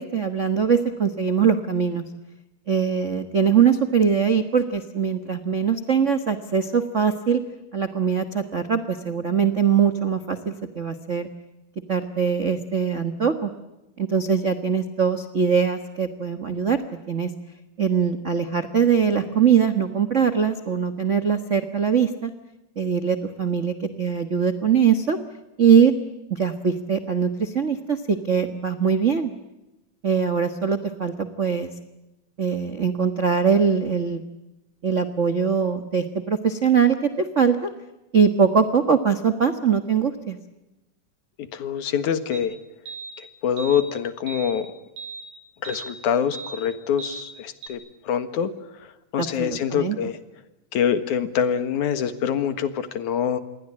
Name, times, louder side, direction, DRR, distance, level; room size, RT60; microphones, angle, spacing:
voice 1, 0.0-2.0 2.7-7.4 7.7-11.3 11.9-13.5 14.0-17.3 17.8-22.3 22.8-25.2 25.6-25.9 26.3-29.3 30.0-31.7 32.4-34.2 34.8-37.7 38.1-40.4 49.2-50.0, right 6 dB, 60° right, 9 dB, 0.7 m, -22 dB
voice 2, 41.4-42.5 43.2-44.7 45.6-47.8 48.0-48.5 48.8-50.2 50.7-53.4, left 8 dB, 70° left, 11 dB, 2.9 m, -25 dB
sound 1, 42.3-42.4 42.9-43.1 43.6-43.9 44.3-44.6 45.0-45.3 45.6-45.9 46.3-46.6 47.0-47.3 47.6-47.7, right 4 dB, 90° right, 4.2 m, -37 dB
27.5 x 21.0 x 8.7 m, 0.98 s
omnidirectional pair, 3.6 m